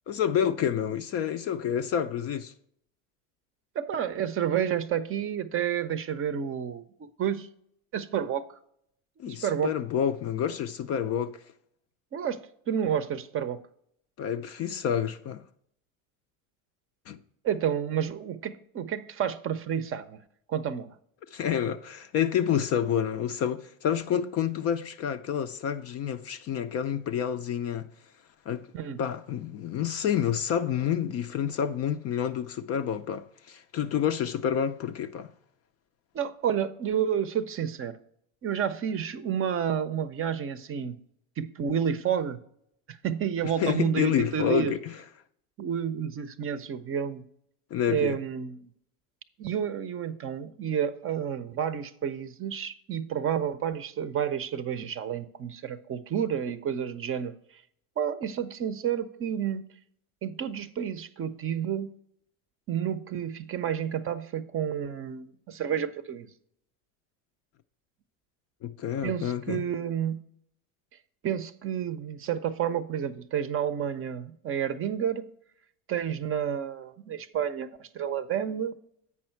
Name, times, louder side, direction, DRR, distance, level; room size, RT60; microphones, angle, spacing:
voice 1, 0.1-2.5 9.2-11.4 14.2-15.4 17.1-17.2 21.3-27.9 28.5-28.7 29.0-35.3 43.6-44.9 47.7-48.2 68.6-69.7, left 9 dB, 35° left, 0.4 m, -29 dB
voice 2, 3.7-7.5 7.9-8.5 9.3-9.7 12.1-12.4 12.7-13.6 17.4-20.2 20.5-20.9 28.7-29.0 36.1-38.0 38.4-41.0 41.4-42.4 42.9-44.8 45.6-47.3 47.9-48.7 49.4-57.3 58.0-59.6 60.2-61.9 62.7-66.3 69.0-70.2 71.2-75.3 75.9-78.8, right 8 dB, 30° right, 0.6 m, -30 dB
8.4 x 5.5 x 4.4 m
hypercardioid pair, 90°, 42 cm